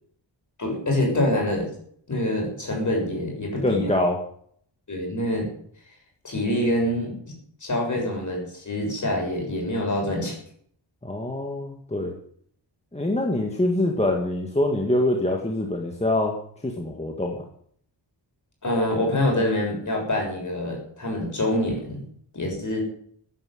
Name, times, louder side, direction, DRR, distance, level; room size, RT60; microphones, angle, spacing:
voice 1, 0.6-1.7 2.1-3.9 4.9-5.5 6.2-10.4 18.6-22.0 22.3-22.8, left 1 dB, 40° left, 0 dB, 7.1 m, -26 dB
voice 2, 3.6-4.2 11.0-12.1 12.9-16.4 16.6-17.4, left 1 dB, 15° left, 0 dB, 1.9 m, -24 dB
15.5 x 10.0 x 7.8 m, 0.63 s
wide cardioid pair, 175°, 45 cm